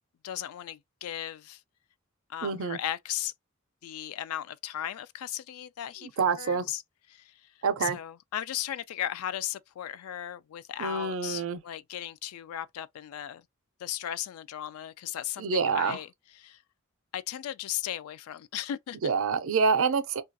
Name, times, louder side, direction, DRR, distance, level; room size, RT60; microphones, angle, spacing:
voice 1, 0.2-1.6 2.3-3.3 3.8-6.8 7.1-7.4 7.8-13.4 13.8-16.1 16.4-16.6 17.1-19.1, left 11 dB, 80° left, 0.3 m, -36 dB
voice 2, 2.4-2.8 6.0-6.7 7.6-8.0 10.8-11.6 15.4-16.0 19.0-20.2, right 5 dB, 65° right, 0.5 m, -27 dB
2.3 x 2.3 x 2.6 m
head